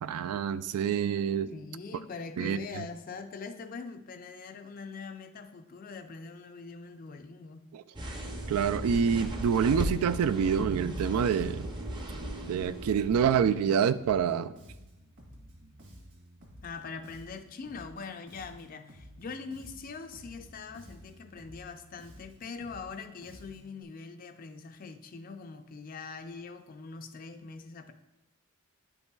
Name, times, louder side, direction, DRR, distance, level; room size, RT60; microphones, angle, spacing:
voice 1, 0.0-1.5 2.4-2.9 7.7-7.8 8.5-11.7 12.5-14.5, right 7 dB, 85° right, 13 dB, 0.3 m, -27 dB
voice 2, 1.5-7.6 16.6-27.9, left 4 dB, 40° left, 8 dB, 0.4 m, -43 dB
sound 1, 7.9-13.7, right 1 dB, 20° right, 0.6 m, -37 dB
Bass guitar, 13.9-23.8, equal, 55° right, 1.8 m, -53 dB
10.0 x 5.5 x 2.3 m, 0.97 s
head